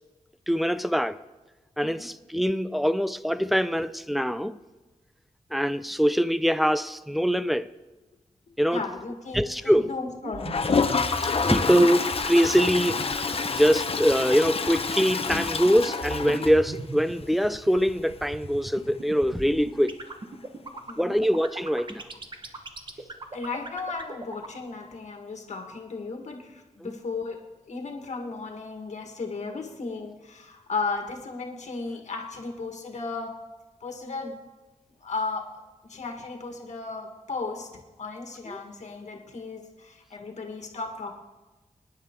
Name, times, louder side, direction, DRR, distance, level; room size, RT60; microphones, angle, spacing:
voice 1, 0.5-1.2 1.8-4.6 5.5-7.7 8.6-8.8 9.3-9.9 11.5-13.0 13.5-20.0 21.0-22.0 26.8-26.9 38.5-38.6, equal, ahead, 0.5 m, -23 dB
voice 2, 8.7-10.6 20.9-21.2 23.3-27.4 27.7-33.3 33.8-34.4 35.0-35.6 35.9-37.7 38.0-41.2, left 4 dB, 70° left, 1.7 m, -35 dB
sound 1, 10.2-24.6, right 3 dB, 40° right, 1.3 m, -37 dB
Toilet flush, 10.4-17.1 17.4-17.5 17.7-17.8 18.1-18.2 20.7-20.8 22.1-22.2, left 4 dB, 50° left, 0.9 m, -28 dB
25.0 x 10.0 x 3.7 m
wide cardioid pair, 105°, 13 cm